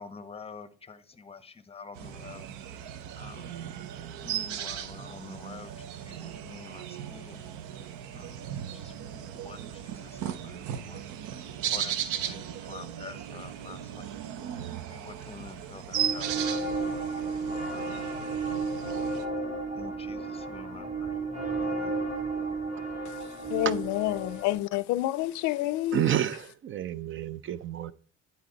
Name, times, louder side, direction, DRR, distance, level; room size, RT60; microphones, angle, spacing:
voice 1, 0.0-2.5 3.2-3.8 4.2-7.9 8.1-11.0 11.3-14.6 14.9-16.6 17.3-17.4 17.7-18.1 19.7-21.2 21.6-21.9, left 5 dB, 20° left, 0.8 m, -47 dB
sound 1, 2.0-19.3, right 10 dB, 75° right, 0.7 m, -37 dB
sound 2, 15.9-24.5, right 3 dB, 20° right, 2.4 m, -33 dB
voice 2, 23.5-26.0, left 15 dB, 75° left, 0.5 m, -28 dB
voice 3, 25.9-27.9, right 10 dB, 45° right, 0.5 m, -29 dB
9.9 x 4.1 x 3.9 m
supercardioid pair, 75°, 30 cm